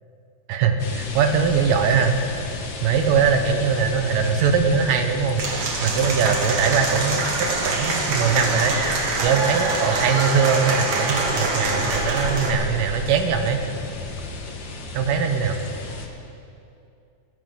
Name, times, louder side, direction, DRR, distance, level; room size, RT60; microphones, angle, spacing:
voice 1, 0.5-2.2 2.8-5.4 5.8-8.8 9.2-13.6 14.9-15.6, right 6 dB, 75° right, 6 dB, 2.6 m, -21 dB
sound 1, 0.8-16.1, left 2 dB, 55° left, 1.3 m, -34 dB
Applause / Crowd, 5.4-12.5, right 3 dB, 50° right, 2.2 m, -25 dB
20.0 x 16.5 x 3.9 m, 2.6 s
omnidirectional pair, 4.0 m